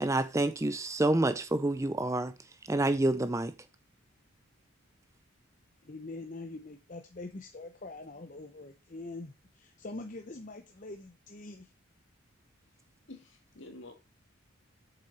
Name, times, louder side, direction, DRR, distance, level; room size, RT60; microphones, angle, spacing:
voice 1, 0.0-2.3 2.7-3.5, right 2 dB, 15° right, 0.4 m, -28 dB
voice 2, 5.8-11.7, left 2 dB, 35° left, 0.8 m, -44 dB
voice 3, 13.1-13.9, left 2 dB, 60° left, 2.2 m, -48 dB
8.3 x 6.9 x 4.2 m
head